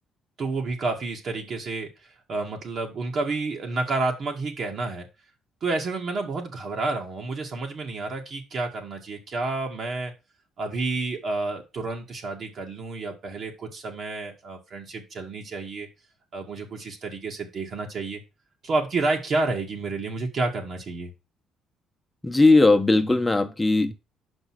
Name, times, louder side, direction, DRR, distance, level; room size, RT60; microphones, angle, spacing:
voice 1, 0.4-1.9 2.3-5.1 5.6-10.1 10.6-15.9 16.3-18.2 18.6-21.1, right 3 dB, 55° right, 1.8 m, -30 dB
voice 2, 22.2-23.9, left 2 dB, 15° left, 1.1 m, -18 dB
5.4 x 5.4 x 6.2 m
cardioid pair, 80°, 0 cm